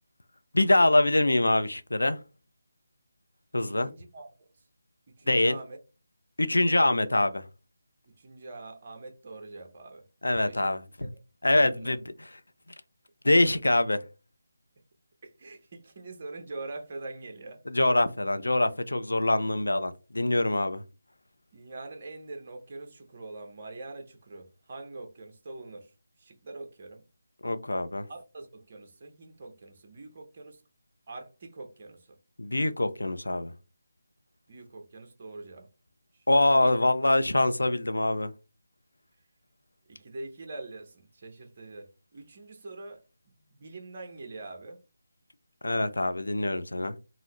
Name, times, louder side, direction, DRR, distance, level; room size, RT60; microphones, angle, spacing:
voice 1, 0.5-2.2 3.5-3.9 5.3-5.6 6.4-7.4 10.2-10.8 11.4-12.0 13.2-14.0 17.7-20.8 27.4-28.0 32.4-33.5 36.3-38.3 45.6-47.0, left 2 dB, 85° left, 0.4 m, -24 dB
voice 2, 3.7-4.5 5.1-5.8 6.7-6.9 8.0-10.0 10.5-10.7 11.0-11.1 11.6-11.9 15.2-17.6 21.5-25.9 26.2-27.0 28.1-30.6 31.1-32.2 34.5-35.7 36.1-36.2 36.5-36.8 39.9-43.0 43.5-44.8, right 2 dB, 40° right, 0.7 m, -44 dB
3.7 x 2.0 x 2.9 m
figure-of-eight pair, 160°, 0 cm